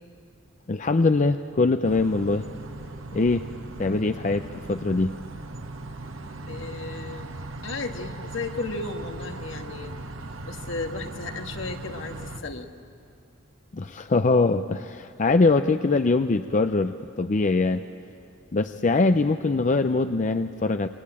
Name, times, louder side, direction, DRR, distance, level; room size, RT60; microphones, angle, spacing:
voice 1, 0.7-2.5 3.1-3.5 3.8-5.2 13.7-17.8 18.5-20.9, left 3 dB, 40° left, 9 dB, 0.6 m, -22 dB
sound 1, 1.8-12.4, right 2 dB, 90° right, 1.3 m, -38 dB
voice 2, 6.5-7.3 7.6-9.9 10.4-12.7, left 3 dB, 70° left, 5 dB, 1.6 m, -34 dB
26.5 x 22.0 x 8.8 m, 2.4 s
head